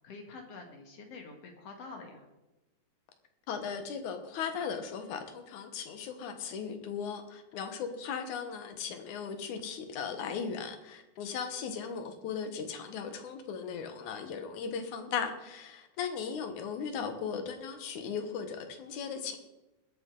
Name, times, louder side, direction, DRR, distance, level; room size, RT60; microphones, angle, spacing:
voice 1, 0.0-2.3, left 3 dB, 55° left, 3 dB, 2.7 m, -47 dB
voice 2, 3.5-19.4, left 6 dB, 70° left, 7 dB, 2.6 m, -37 dB
21.0 x 8.5 x 3.9 m, 1.0 s
omnidirectional pair, 3.6 m